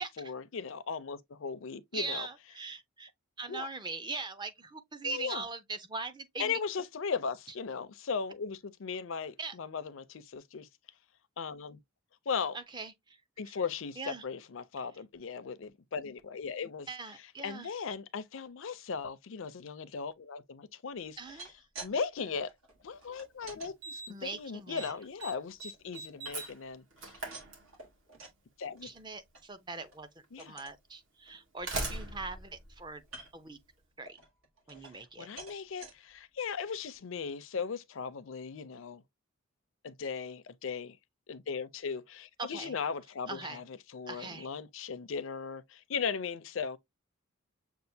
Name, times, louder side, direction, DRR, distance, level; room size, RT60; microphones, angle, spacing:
voice 1, 0.0-2.3 3.5-3.7 5.0-5.4 6.4-10.7 11.4-11.8 12.3-12.6 13.4-16.9 17.4-21.2 21.8-22.5 22.8-26.8 28.6-28.9 30.3-30.6 35.2-39.0 39.8-41.0 41.3-46.8, left 5 dB, 65° left, 0.5 m, -37 dB
voice 2, 1.9-3.1 3.4-6.5 9.4-9.6 12.5-13.2 14.0-14.2 16.9-17.7 21.2-21.5 24.1-24.9 28.8-33.0 33.3-33.6 34.0-34.2 34.7-35.3 42.4-42.7 43.3-43.6 44.1-44.5, right 3 dB, 20° right, 0.5 m, -41 dB
sound 1, 21.1-22.0 22.2-23.7 24.3-25.3 25.7-26.7 27.0-28.4 28.8-29.0 29.3-29.4 29.8-30.0 30.4-30.8 31.3-31.4 31.6-32.4 33.0-33.5 34.1-35.1 35.4-35.9 36.5-36.6 36.9-37.0, right 2 dB, 80° right, 1.7 m, -50 dB
Slam, 23.0-23.1 23.8-24.3 24.6-24.9 25.2-28.1 29.3-29.4 30.2-30.3 31.3-33.6, right 2 dB, 65° right, 1.7 m, -41 dB
6.7 x 2.4 x 2.7 m
head